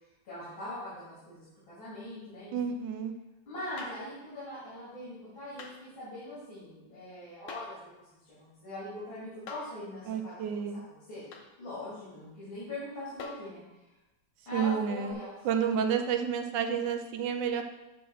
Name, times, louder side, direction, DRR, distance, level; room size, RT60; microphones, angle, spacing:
voice 1, 0.2-2.5 3.4-11.2 11.6-13.9 14.4-15.7, left 1 dB, 90° left, -10 dB, 3.5 m, -42 dB
voice 2, 2.5-3.1 10.1-10.8 14.5-15.1 15.4-17.6, right 7 dB, 75° right, 6 dB, 1.2 m, -30 dB
sound 1, 3.8-4.1 5.6-5.8 7.5-7.8 9.5-9.8 11.3-11.5 13.2-13.6 15.1-15.2, left 3 dB, 70° left, 1.5 m, -43 dB
8.8 x 3.3 x 6.2 m, 1.0 s
omnidirectional pair, 2.2 m